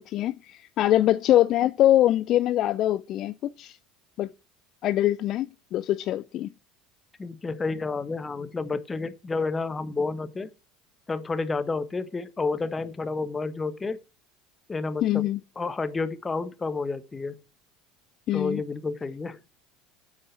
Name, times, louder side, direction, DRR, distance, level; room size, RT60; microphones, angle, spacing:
voice 1, 0.0-3.8 4.2-4.3 4.8-6.5 15.0-15.4 18.3-18.6, left 13 dB, 45° left, 0.5 m, -23 dB
voice 2, 7.2-10.5 11.1-14.0 14.7-15.2 15.6-17.3 18.3-19.4, left 3 dB, 20° left, 1.3 m, -30 dB
9.0 x 8.1 x 6.3 m
figure-of-eight pair, 70°, 0 cm